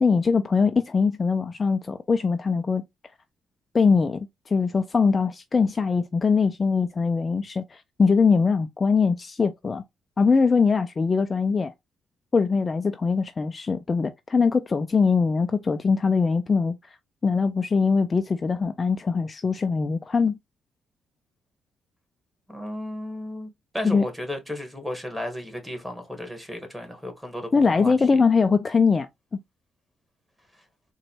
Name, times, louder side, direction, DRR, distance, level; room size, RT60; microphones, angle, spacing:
voice 1, 0.0-2.8 3.7-9.8 10.2-11.7 12.3-16.8 17.2-20.4 23.8-24.0 27.5-29.4, left 5 dB, 30° left, 0.3 m, -22 dB
voice 2, 22.5-23.5 23.7-27.9, left 1 dB, 5° right, 1.3 m, -34 dB
3.9 x 2.2 x 2.9 m
cardioid pair, 90°, 0 cm